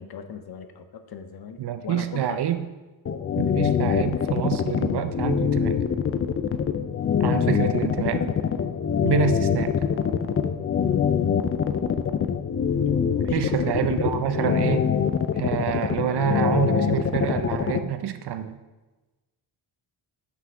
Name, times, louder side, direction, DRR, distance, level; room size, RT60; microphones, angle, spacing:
voice 1, 0.0-2.4 12.8-13.8 15.4-15.5, left 6 dB, 50° left, 8 dB, 0.7 m, -40 dB
voice 2, 1.6-2.7 3.4-5.8 7.2-8.4 9.0-9.8 13.3-14.9 15.4-18.6, right 10 dB, 55° right, 10 dB, 0.6 m, -27 dB
sound 1, 3.1-17.8, left 7 dB, 30° left, 0.4 m, -23 dB
6.0 x 5.6 x 4.9 m, 1.2 s
cardioid pair, 95°, 49 cm